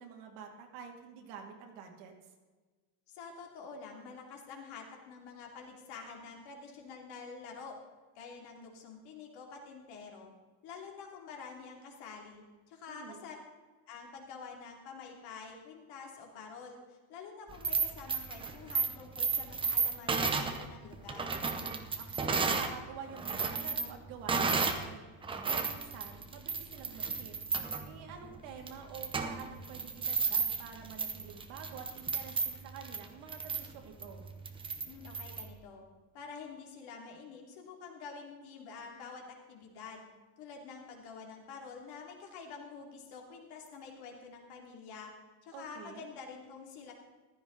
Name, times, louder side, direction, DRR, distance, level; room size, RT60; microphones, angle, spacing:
voice 1, 0.0-2.1 12.9-13.3 22.0-25.0 25.4-27.4 27.8-34.2 45.5-46.1, right 6 dB, 75° right, 2 dB, 2.7 m, -48 dB
voice 2, 3.1-7.8 8.1-10.3 10.6-13.4 13.9-21.4 34.9-35.9 36.1-40.0 40.4-45.1 45.4-46.9, left 5 dB, 55° left, 1 dB, 2.9 m, -48 dB
sound 1, 17.5-22.7 23.1-24.9 25.2-35.5, right 4 dB, 10° right, 0.7 m, -34 dB
15.0 x 13.5 x 4.0 m, 1.3 s
cardioid pair, 175°, 47 cm